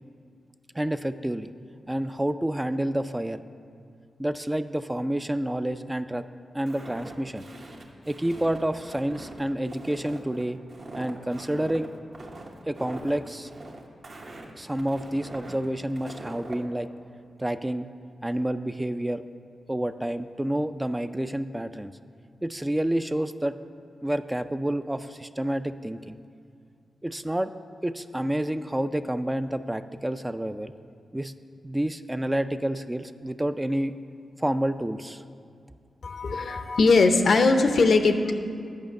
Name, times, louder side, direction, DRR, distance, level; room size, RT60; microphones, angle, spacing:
voice 1, 0.7-1.5 1.9-3.4 4.2-6.2 6.5-7.5 8.1-10.6 10.9-11.9 12.7-13.5 14.5-16.9 17.4-17.9 18.2-19.2 19.7-21.9 22.4-23.6 24.0-26.2 27.0-27.5 27.8-30.7 31.1-31.3 31.6-33.9 34.4-35.2, right 1 dB, 15° right, 10 dB, 0.3 m, -29 dB
Walk footsteps, 6.7-16.6, right 2 dB, 60° right, 1.1 m, -42 dB
voice 2, 36.0-38.3, left 3 dB, 70° left, 7 dB, 0.6 m, -20 dB
9.3 x 5.1 x 6.4 m, 2.4 s
cardioid pair, 50°, 0 cm